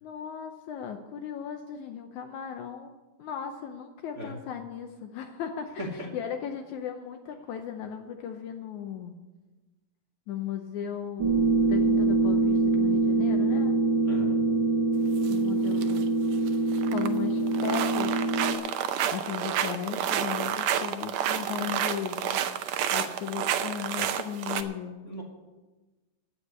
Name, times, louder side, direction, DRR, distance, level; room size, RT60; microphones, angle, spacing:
voice 1, 0.0-2.9 3.2-9.2 10.3-13.7 15.3-16.1 16.9-18.2 19.1-22.4 22.9-25.0, left 8 dB, 75° left, 5 dB, 1.9 m, -36 dB
sound 1, 11.2-18.5, right 3 dB, 60° right, 1.1 m, -24 dB
voice 2, 14.0-14.4 25.0-25.2, equal, 35° right, -3 dB, 1.2 m, -37 dB
sound 2, 15.2-15.3 15.7-16.0 16.3-17.2 17.5-24.6, right 9 dB, 90° right, 1.5 m, -29 dB
10.0 x 8.4 x 9.4 m, 1.2 s
omnidirectional pair, 4.0 m